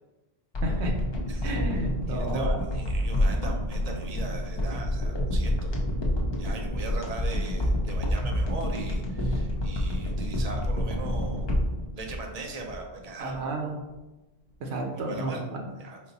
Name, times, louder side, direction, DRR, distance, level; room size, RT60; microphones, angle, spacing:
sound 1, 0.5-13.0 13.3-13.4, left 1 dB, 35° left, 0.5 m, -28 dB
voice 1, 0.6-0.9 1.4-2.6 13.2-13.8 14.6-15.7, right 2 dB, 85° right, 1 dB, 1.0 m, -32 dB
voice 2, 2.1-5.8 6.4-11.5 12.0-13.5 14.9-15.4 15.8-16.0, right 3 dB, 45° right, 2 dB, 0.5 m, -40 dB
4.2 x 2.0 x 3.9 m, 1.1 s
omnidirectional pair, 1.1 m